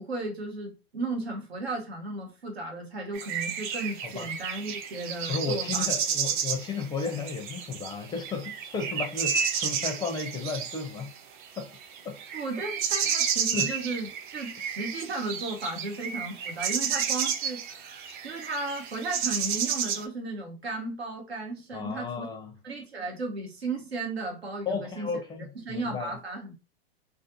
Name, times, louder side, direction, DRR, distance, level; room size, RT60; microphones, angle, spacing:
voice 1, 0.0-5.9 6.3-6.4 6.7-6.8 12.3-17.9 18.2-22.3 22.6-25.1 25.6-26.5, right 2 dB, 85° right, 1.0 m, -35 dB
sound 1, 3.1-20.0, right 7 dB, 55° right, 0.6 m, -31 dB
voice 2, 5.3-11.1 11.6-11.7 12.0-12.2 13.0-13.1 13.5-13.7 21.7-22.6 24.7-26.2, left 4 dB, 15° left, 0.4 m, -34 dB
2.5 x 2.4 x 2.6 m
hypercardioid pair, 105°, 31 cm